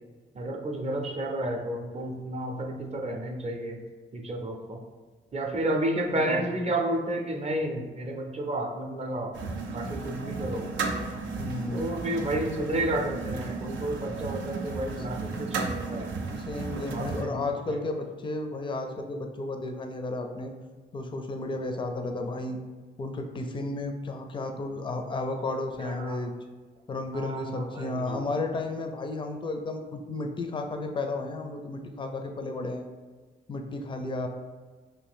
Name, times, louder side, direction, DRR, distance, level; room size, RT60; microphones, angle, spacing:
voice 1, 0.3-3.8 4.1-4.8 5.3-9.4 9.7-10.7 11.7-16.1 16.9-17.4 17.7-17.8 25.8-26.2 27.1-28.2, right 1 dB, 35° right, 2 dB, 0.6 m, -31 dB
voice 2, 6.1-6.5 11.4-11.9 16.3-20.5 20.9-22.6 23.0-26.3 26.9-32.8 33.5-34.3, left 2 dB, 25° left, 5 dB, 0.4 m, -33 dB
sound 1, 9.3-17.2, right 4 dB, 85° right, 0.4 m, -34 dB
2.6 x 2.4 x 3.5 m, 1.4 s
cardioid pair, 65°, 19 cm